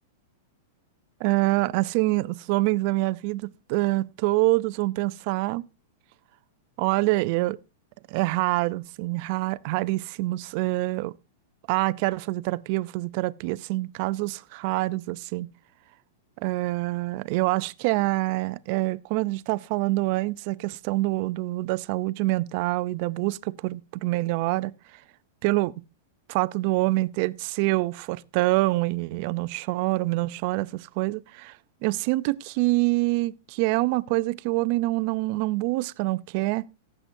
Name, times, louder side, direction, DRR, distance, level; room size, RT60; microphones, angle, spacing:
voice 1, 1.2-5.7 6.8-7.6 8.1-11.1 11.7-15.5 16.4-24.7 25.4-25.7 26.3-31.6 31.8-36.7, right 20 dB, 45° right, 0.4 m, -26 dB
18.0 x 7.7 x 2.6 m
supercardioid pair, 155°, 0 cm